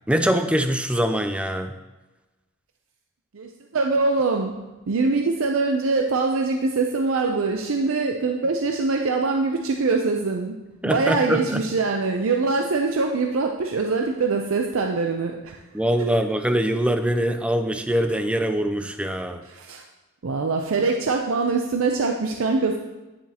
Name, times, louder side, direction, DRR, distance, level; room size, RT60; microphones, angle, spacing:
voice 1, 0.1-1.7 10.8-11.6 15.7-19.4, equal, 5° right, 8 dB, 0.4 m, -23 dB
voice 2, 3.3-4.5 4.9-10.6 10.8-15.6 16.0-16.1 19.5-19.8 20.2-22.8, right 3 dB, 70° right, 3 dB, 0.5 m, -23 dB
9.6 x 7.2 x 2.9 m, 1.1 s
head